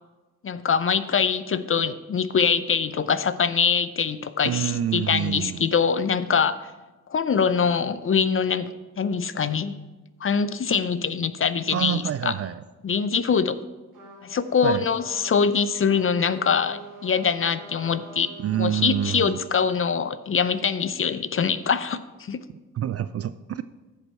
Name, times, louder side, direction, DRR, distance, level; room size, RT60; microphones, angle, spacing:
voice 1, 0.4-6.7 7.1-8.7 9.0-9.7 10.2-12.3 12.8-13.6 14.2-18.3 18.6-22.4, left 6 dB, 30° left, 14 dB, 0.6 m, -23 dB
voice 2, 4.4-5.6 11.7-12.6 14.6-14.8 18.4-19.4 22.7-23.6, right 10 dB, 35° right, 14 dB, 0.4 m, -27 dB
Trumpet, 13.9-19.6, right 2 dB, 60° right, 3.6 m, -45 dB
15.0 x 5.2 x 4.5 m, 1.2 s
hypercardioid pair, 40°, 44 cm